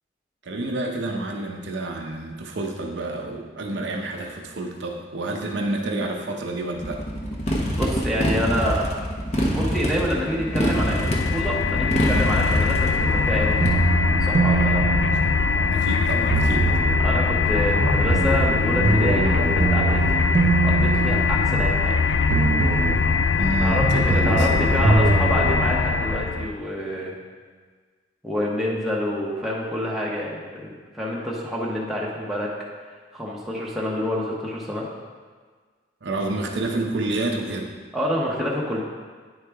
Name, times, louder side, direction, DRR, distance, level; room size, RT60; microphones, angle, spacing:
voice 1, 0.4-7.0 15.1-15.2 15.7-16.7 23.4-24.7 36.0-37.7, right 2 dB, 75° right, 1 dB, 0.7 m, -29 dB
Motorcycle, 6.8-13.7, equal, 35° left, 0.9 m, -25 dB
voice 2, 7.7-8.9 9.4-13.6 14.2-14.9 17.0-20.2 20.6-21.9 23.6-27.1 28.2-32.5 33.1-34.9 37.9-38.8, equal, ahead, -5 dB, 0.8 m, -27 dB
sound 1, 10.4-26.5, left 5 dB, 90° left, 0.4 m, -22 dB
sound 2, 13.6-15.8 16.3-17.1 17.8-21.9 22.3-23.1 23.8-25.6, right 3 dB, 40° right, 0.4 m, -23 dB
9.5 x 4.8 x 3.4 m, 1.5 s
head